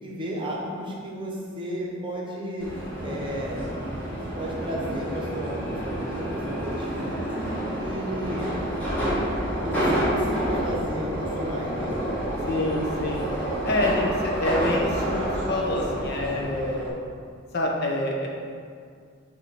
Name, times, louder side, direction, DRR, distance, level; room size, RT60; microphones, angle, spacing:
voice 1, 0.0-2.7 3.0-3.7 4.4-7.1 7.7-8.5 9.6-12.0, equal, 25° right, -4 dB, 1.1 m, -33 dB
Subway metro underground, 2.6-16.9, equal, 10° left, 1.4 m, -29 dB
voice 2, 12.5-13.3 13.6-15.2 15.5-16.9 17.5-18.3, left 1 dB, 55° left, -1 dB, 1.0 m, -26 dB
6.7 x 3.0 x 5.8 m, 2.1 s
head